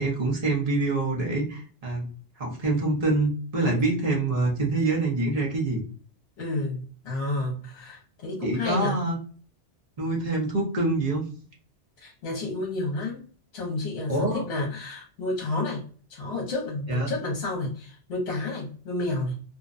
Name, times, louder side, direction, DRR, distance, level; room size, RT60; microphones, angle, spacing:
voice 1, 0.0-2.1 2.4-5.8 8.4-9.2 10.0-11.3 14.1-14.5 16.9-17.1, right 2 dB, 40° right, -2 dB, 0.7 m, -25 dB
voice 2, 6.4-9.0 12.0-13.3 13.5-15.8 16.1-19.4, left 2 dB, 65° left, -1 dB, 1.0 m, -31 dB
2.6 x 2.1 x 2.4 m, 0.41 s
omnidirectional pair, 1.2 m